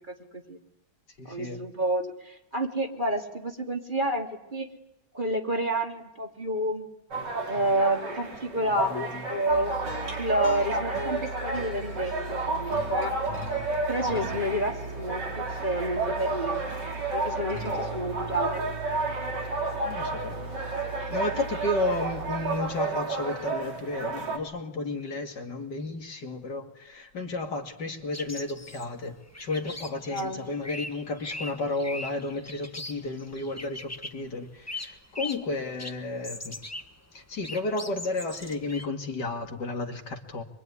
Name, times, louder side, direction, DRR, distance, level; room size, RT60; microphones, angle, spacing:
voice 1, 0.1-0.6 1.2-4.7 5.1-6.9 7.5-9.7 10.2-13.1 13.9-16.6 17.1-18.6 30.1-30.5, right 1 dB, 25° right, 2 dB, 3.0 m, -30 dB
voice 2, 1.2-1.6 8.6-9.2 19.9-20.5 21.1-36.6 37.1-40.4, left 2 dB, 65° left, 4 dB, 2.9 m, -33 dB
sound 1, 7.1-24.4, right 3 dB, 70° right, 4.2 m, -31 dB
sound 2, 9.5-23.1, right 3 dB, 90° right, 5.5 m, -39 dB
sound 3, 28.1-34.3 34.7-35.5 35.8-36.9 37.2-38.8, left 2 dB, 10° left, 1.3 m, -40 dB
26.0 x 23.5 x 9.7 m, 0.83 s
omnidirectional pair, 2.0 m